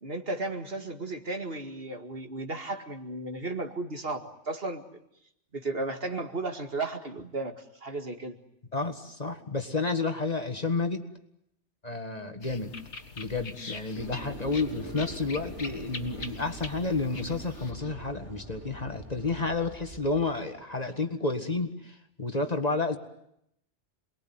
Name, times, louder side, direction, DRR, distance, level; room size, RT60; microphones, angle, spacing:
voice 1, 0.0-4.8 5.5-7.5 7.8-8.4, right 2 dB, 55° right, 6 dB, 2.4 m, -34 dB
voice 2, 8.7-11.0 11.8-12.7 13.2-23.0, left 3 dB, 35° left, 7 dB, 2.0 m, -30 dB
sound 1, 12.4-17.7, left 3 dB, 75° left, 2.2 m, -43 dB
sound 2, 13.9-20.3, right 1 dB, 90° right, 4.9 m, -44 dB
28.5 x 21.5 x 9.6 m, 0.77 s
omnidirectional pair, 1.2 m